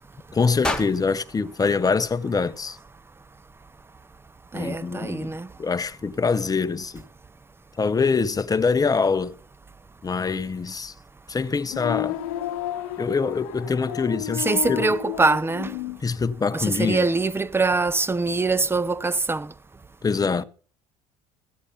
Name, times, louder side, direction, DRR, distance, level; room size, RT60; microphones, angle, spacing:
voice 1, 0.3-2.8 4.5-5.3 5.6-7.0 7.8-9.4 10.0-10.9 11.3-12.2 13.0-14.8 16.0-17.1 20.0-20.4, left 5 dB, 20° left, 0.8 m, -24 dB
sound 1, 0.6-2.8, left 2 dB, 5° left, 2.1 m, -33 dB
voice 2, 4.5-5.5 14.4-15.8 16.5-19.5, right 3 dB, 15° right, 0.6 m, -23 dB
sound 2, 11.6-16.0, left 15 dB, 85° left, 0.8 m, -31 dB
15.0 x 8.2 x 5.7 m
supercardioid pair, 80°, 17 cm